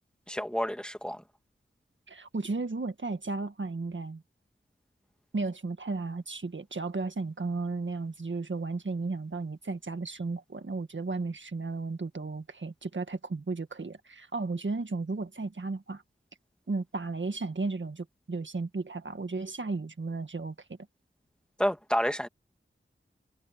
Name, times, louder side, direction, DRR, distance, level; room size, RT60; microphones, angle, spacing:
voice 1, 0.3-1.2 21.6-22.3, equal, 5° left, 2.2 m, -29 dB
voice 2, 2.1-4.2 5.3-16.0 16.7-20.6, right 3 dB, 65° right, 1.7 m, -34 dB
wide cardioid pair, 65°, 21 cm